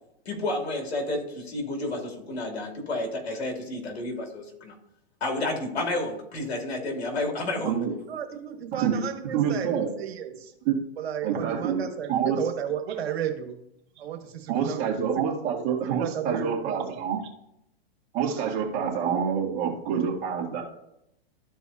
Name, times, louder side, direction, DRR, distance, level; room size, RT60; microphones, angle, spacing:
voice 1, 0.3-4.7 5.2-7.8, left 2 dB, 85° left, 1 dB, 2.8 m, -31 dB
voice 2, 8.1-10.5 11.0-13.6 14.0-14.8 15.1-15.2 15.8-17.0, right 9 dB, 75° right, 5 dB, 1.5 m, -33 dB
voice 3, 9.3-9.9 10.7-10.8 11.2-12.4 14.5-17.2 18.1-20.6, right 7 dB, 35° right, -2 dB, 2.1 m, -27 dB
14.0 x 4.7 x 2.8 m, 0.81 s
hypercardioid pair, 145°, 31 cm